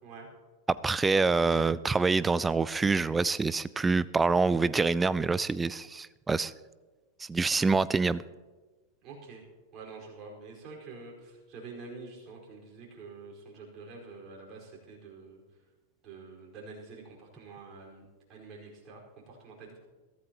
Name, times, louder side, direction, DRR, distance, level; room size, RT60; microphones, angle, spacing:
voice 1, 0.7-6.5 7.2-8.2, right 4 dB, 15° right, 19 dB, 0.4 m, -26 dB
voice 2, 9.0-9.4 9.7-15.4 16.0-19.8, right 4 dB, 35° right, -2 dB, 4.7 m, -47 dB
22.0 x 13.5 x 3.0 m, 1.3 s
figure-of-eight pair, 90°, 0 cm